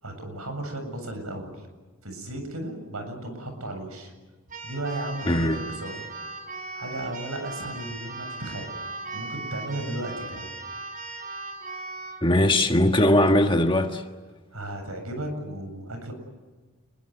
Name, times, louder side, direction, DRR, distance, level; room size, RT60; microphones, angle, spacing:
voice 1, 0.0-1.7 2.0-4.1 4.6-6.0 6.7-8.7 9.1-10.5 14.5-16.1, right 1 dB, 80° right, 8.0 m, -35 dB
Keyboard (musical), 4.5-12.2, right 3 dB, 35° right, 4.4 m, -38 dB
voice 2, 5.3-5.6 12.2-14.0, left 1 dB, 20° left, 1.6 m, -20 dB
29.0 x 22.5 x 8.0 m
head